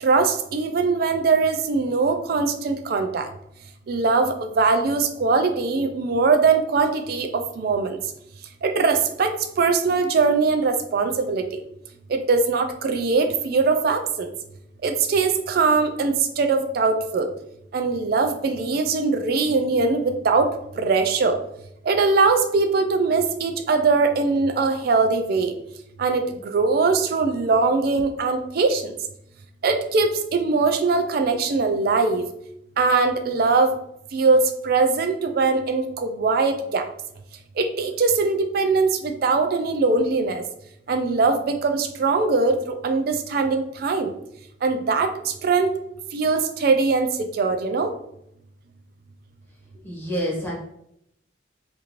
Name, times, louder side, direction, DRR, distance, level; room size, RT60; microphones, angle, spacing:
voice 1, 0.0-3.3 3.9-7.3 7.6-8.0 8.6-11.6 12.1-14.3 14.8-17.3 17.7-20.5 20.8-21.4 21.9-25.5 26.0-28.9 29.6-32.3 32.8-33.7 34.1-36.8 37.6-40.4 40.9-44.1 44.6-45.7 46.1-47.9, right 4 dB, 50° right, 7 dB, 0.3 m, -21 dB
voice 2, 49.7-50.5, equal, 10° left, -4 dB, 0.7 m, -28 dB
2.6 x 2.5 x 2.9 m, 0.76 s
head